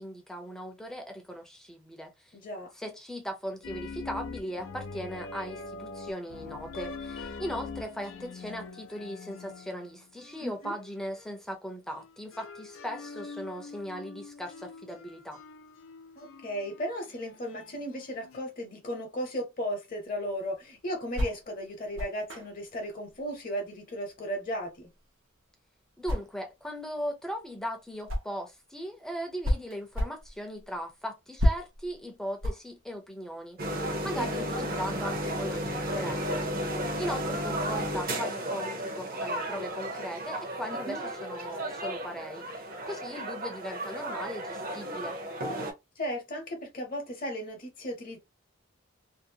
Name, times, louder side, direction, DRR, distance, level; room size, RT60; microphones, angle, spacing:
voice 1, 0.0-2.3 2.7-15.4 26.0-36.6 37.0-45.2, equal, 5° left, 0.6 m, -38 dB
voice 2, 2.3-2.7 10.4-10.7 16.1-24.9 34.1-34.5 40.7-41.0 46.0-48.2, equal, 45° left, 0.8 m, -35 dB
sound 1, 3.6-11.5 11.9-18.4, left 4 dB, 80° left, 0.5 m, -44 dB
sound 2, 20.1-28.6 28.9-33.7, equal, 75° right, 0.8 m, -33 dB
sound 3, 33.6-45.7, right 1 dB, 45° right, 0.8 m, -33 dB
2.6 x 2.0 x 2.7 m
head